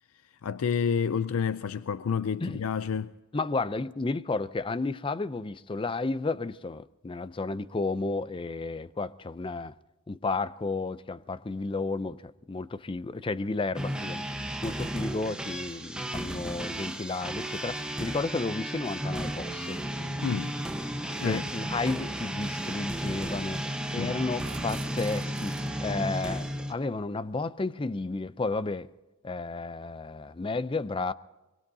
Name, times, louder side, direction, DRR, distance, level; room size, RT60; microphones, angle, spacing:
voice 1, 0.4-3.1 20.2-20.5 21.2-21.5 24.0-24.2, left 6 dB, 75° left, 0.4 m, -29 dB
voice 2, 3.3-9.7 10.1-19.8 21.2-23.6 23.9-28.9 29.2-31.1, left 3 dB, 25° left, 0.4 m, -32 dB
sound 1, 13.7-26.7, right 1 dB, 5° right, 1.0 m, -34 dB
sound 2, 20.1-20.2 21.6-21.7 24.3-25.7, right 8 dB, 45° right, 3.0 m, -49 dB
23.0 x 22.5 x 2.7 m
head